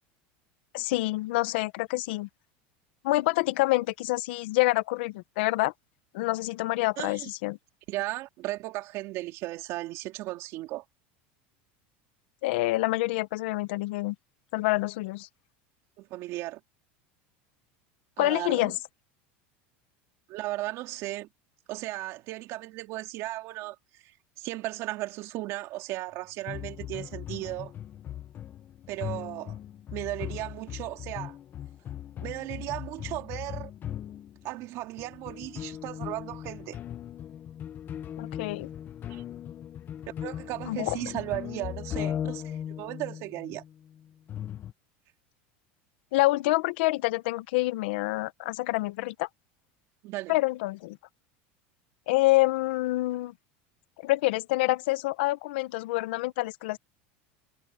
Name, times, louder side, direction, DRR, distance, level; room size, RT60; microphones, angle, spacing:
voice 1, 0.7-2.3 3.0-5.7 6.1-7.6 12.4-14.1 14.5-15.3 18.2-18.7 38.2-38.7 40.7-41.0 46.1-49.3 50.3-51.0 52.1-53.3 54.0-56.8, left 20 dB, 75° left, 1.2 m, -27 dB
voice 2, 7.0-7.3 7.9-10.8 16.0-16.6 18.2-18.7 20.3-21.3 21.7-23.7 24.0-24.1 24.4-27.7 28.9-29.6 29.9-31.4 32.2-33.7 34.4-36.8 39.1-39.2 40.2-43.6 50.0-50.4, right 18 dB, 55° right, 3.0 m, -36 dB
sound 1, 26.5-34.7 35.0-44.7, left 10 dB, 35° left, 1.1 m, -38 dB
supercardioid pair, 125°, 6 cm